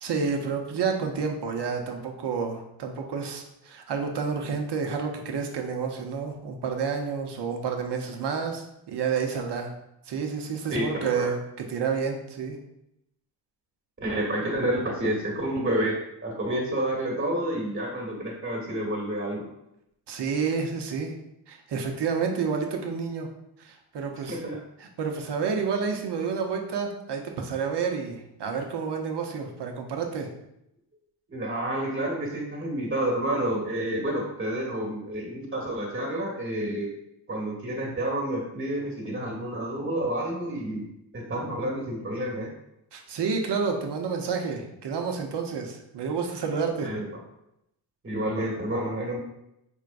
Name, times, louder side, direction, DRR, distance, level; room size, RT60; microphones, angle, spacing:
voice 1, 0.0-9.7 10.1-12.6 20.1-21.1 21.5-23.3 23.6-24.4 24.8-30.3 42.9-46.9, right 5 dB, 60° right, 3 dB, 0.9 m, -29 dB
voice 2, 10.7-11.3 14.0-19.4 24.3-24.6 31.3-36.9 37.3-40.8 41.1-42.5 46.8-47.0 48.0-49.2, right 1 dB, 25° right, -2 dB, 1.4 m, -29 dB
4.7 x 3.6 x 2.5 m, 0.82 s
cardioid pair, 70°, 46 cm